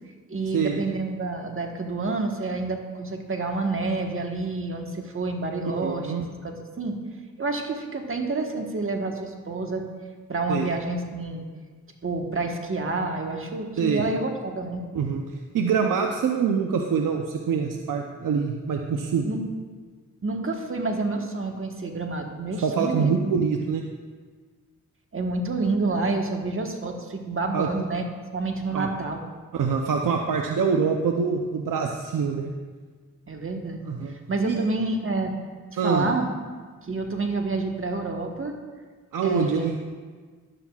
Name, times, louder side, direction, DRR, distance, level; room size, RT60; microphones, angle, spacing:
voice 1, 0.3-6.1 6.4-7.0 7.4-9.8 10.3-11.4 12.0-14.9 19.2-19.4 20.2-23.2 25.1-28.0 28.3-29.2 33.3-35.3 35.8-36.3 36.8-38.5 39.2-39.7, right 3 dB, 40° right, 3 dB, 1.4 m, -28 dB
voice 2, 5.7-6.2 10.5-10.7 13.8-14.0 14.9-19.3 22.6-23.8 27.5-27.7 28.7-28.9 29.5-32.5 33.9-34.1 34.4-34.6 35.8-36.1 39.1-39.8, right 6 dB, 85° right, 2 dB, 0.7 m, -25 dB
13.0 x 11.0 x 2.4 m, 1.5 s
cardioid pair, 65°, 32 cm